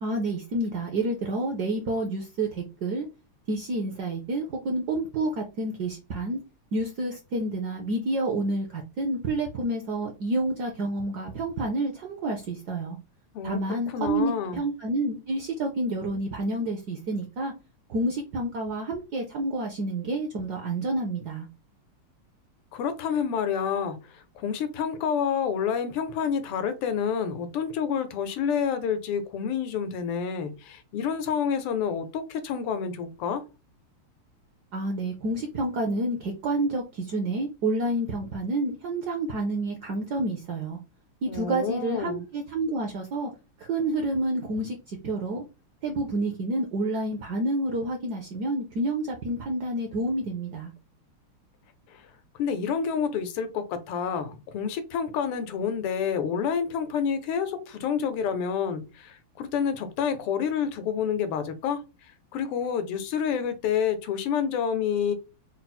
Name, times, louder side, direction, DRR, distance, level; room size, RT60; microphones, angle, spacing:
voice 1, 0.0-3.1 3.5-6.4 6.7-13.0 13.4-17.5 17.9-21.5 34.7-40.8 41.2-43.3 43.6-45.4 45.8-50.7, right 2 dB, 70° right, 2 dB, 1.0 m, -29 dB
voice 2, 13.3-14.6 22.7-33.4 41.3-42.2 51.9-52.0 52.4-61.8 62.3-65.1, left 7 dB, 85° left, 9 dB, 1.7 m, -28 dB
4.3 x 2.0 x 4.1 m, 0.29 s
omnidirectional pair, 2.4 m